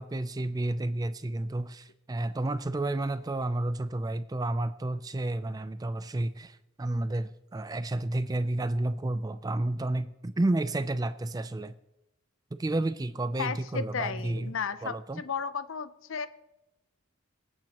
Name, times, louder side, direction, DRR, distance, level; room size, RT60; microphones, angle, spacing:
voice 1, 0.0-11.7 12.5-14.5 14.8-15.2, right 2 dB, 15° right, 12 dB, 0.3 m, -31 dB
voice 2, 13.4-16.3, left 5 dB, 65° left, 13 dB, 0.6 m, -34 dB
26.0 x 8.9 x 2.9 m, 0.94 s
head